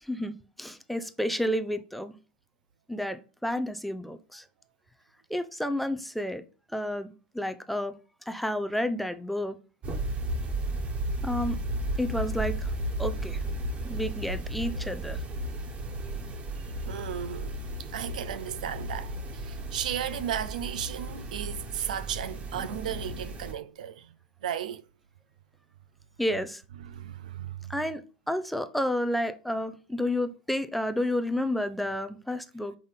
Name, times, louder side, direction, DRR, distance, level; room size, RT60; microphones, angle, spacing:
voice 1, 0.0-2.1 2.9-4.4 5.3-6.4 6.7-7.9 8.3-9.6 11.2-11.6 12.0-12.7 13.0-13.4 13.8-15.2 26.2-26.6 27.7-28.0 28.3-32.8, left 1 dB, ahead, 0.6 m, -30 dB
sound 1, 9.8-23.5, right 1 dB, 30° right, 1.5 m, -34 dB
voice 2, 16.9-24.1 24.4-24.8 26.8-27.7, right 10 dB, 65° right, 0.5 m, -35 dB
5.2 x 3.9 x 5.4 m
figure-of-eight pair, 90°, 4 cm